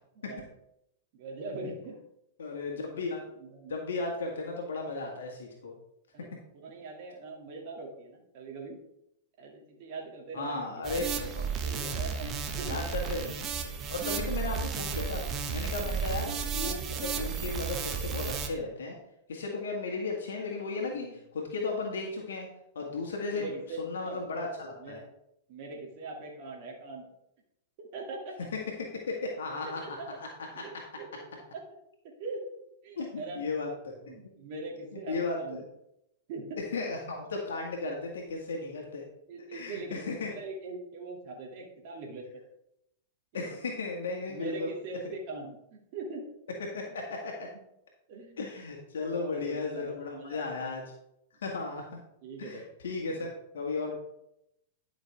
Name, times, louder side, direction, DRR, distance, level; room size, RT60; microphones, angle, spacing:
voice 1, 0.1-0.5 1.1-2.0 2.7-2.8 3.4-3.7 6.1-8.8 9.4-10.8 11.5-12.8 15.8-16.0 20.9-21.2 23.3-24.2 24.8-25.1 25.5-27.1 27.8-28.4 29.8-30.1 30.5-31.2 31.5-31.6 32.0-32.5 32.8-33.4 34.1-35.6 36.3-36.6 39.3-42.4 43.3-43.6 44.3-46.2 48.1-48.4 49.1-50.6 52.2-52.6 53.1-53.3, right 3 dB, 55° right, 0 dB, 2.4 m, -42 dB
voice 2, 2.4-3.2 3.7-5.8 10.3-11.5 12.6-13.4 13.6-15.2 15.5-18.9 19.3-22.5 22.8-23.5 23.8-25.0 28.8-30.7 33.0-34.0 35.1-35.7 36.7-39.1 39.5-40.3 43.3-44.7 46.7-47.5 48.4-50.8 51.4-52.0 52.4-53.3 53.5-54.0, left 3 dB, 75° left, 0 dB, 1.8 m, -35 dB
sound 1, 10.8-18.5, right 6 dB, 30° right, 1.2 m, -33 dB
11.5 x 6.0 x 3.5 m, 0.81 s
hypercardioid pair, 105°, 0 cm